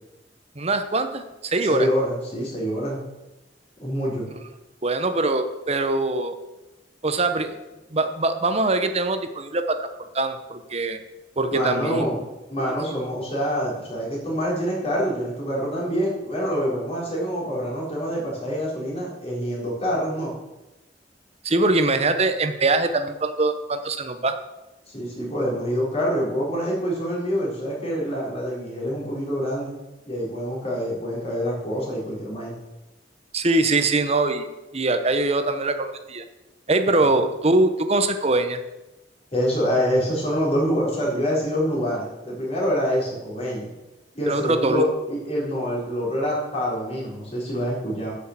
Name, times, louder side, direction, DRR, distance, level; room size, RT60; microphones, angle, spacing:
voice 1, 0.6-1.9 4.8-6.3 7.0-7.6 7.9-9.9 10.1-11.0 11.4-12.1 21.4-24.4 33.3-34.5 34.7-36.2 36.7-38.6 44.3-44.9, right 2 dB, 35° right, 8 dB, 0.9 m, -22 dB
voice 2, 1.6-3.0 3.8-4.3 11.5-12.2 12.5-20.3 24.9-29.7 30.1-32.5 36.9-37.1 39.3-43.7 44.1-48.1, equal, 35° left, -4 dB, 4.1 m, -26 dB
9.7 x 6.5 x 7.4 m, 1.0 s
head